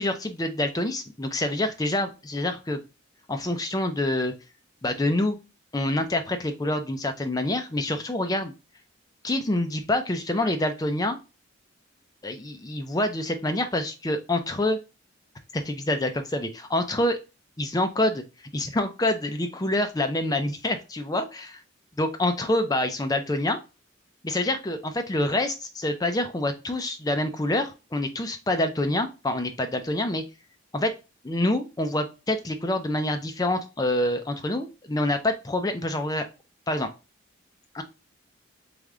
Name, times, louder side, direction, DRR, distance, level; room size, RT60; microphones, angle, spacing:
voice 1, 0.0-2.8 3.3-4.3 4.8-5.4 5.7-8.5 9.2-11.2 12.2-14.8 15.5-17.2 17.6-18.2 18.5-21.6 22.0-23.6 24.2-30.2 30.7-30.9 31.2-36.2 36.7-36.9 37.7-37.8, left 1 dB, 20° left, 7 dB, 0.4 m, -26 dB
3.7 x 3.4 x 3.5 m, 0.29 s
head